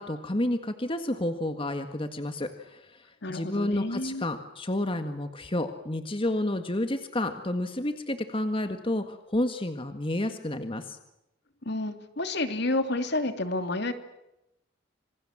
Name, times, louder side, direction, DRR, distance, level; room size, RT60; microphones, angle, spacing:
voice 1, 0.0-11.0, left 1 dB, 30° left, 7 dB, 1.8 m, -30 dB
voice 2, 3.2-4.3 11.6-13.9, left 2 dB, 60° left, 8 dB, 2.9 m, -30 dB
27.5 x 27.0 x 7.4 m, 0.89 s
head